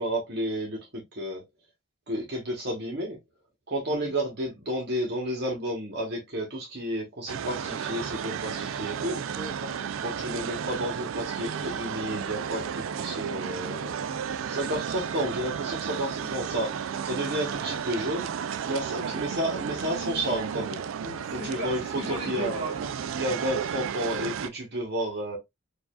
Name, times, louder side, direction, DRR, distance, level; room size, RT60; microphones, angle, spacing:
voice 1, 0.0-1.4 2.1-3.2 3.7-9.2 10.0-13.9 14.5-16.7 17.0-18.3 18.7-20.8 21.3-22.5 23.1-25.4, equal, 55° right, 1.1 m, -31 dB
sound 1, 7.3-24.5, right 7 dB, 80° right, 0.4 m, -33 dB
voice 2, 9.3-9.8 10.6-10.8 14.4-14.7 17.1-17.4 19.0-19.3 21.0-22.9, right 1 dB, 35° right, 1.2 m, -38 dB
4.7 x 2.5 x 2.3 m
head